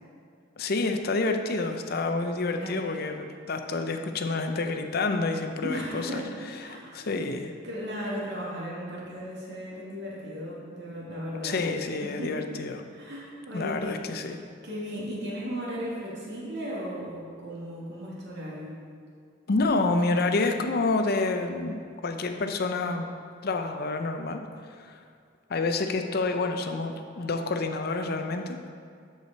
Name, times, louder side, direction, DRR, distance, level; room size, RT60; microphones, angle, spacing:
voice 1, 0.6-6.2 6.7-7.5 11.4-12.8 13.5-14.4 19.5-23.1 23.4-24.4 24.8-25.0 25.5-28.6, left 3 dB, 55° left, 6 dB, 0.6 m, -28 dB
voice 2, 2.5-3.2 5.6-6.3 6.6-7.1 7.6-11.6 12.2-12.4 12.9-14.0 14.6-18.7, equal, 60° right, -6 dB, 2.4 m, -36 dB
13.0 x 4.9 x 4.1 m, 2.2 s
head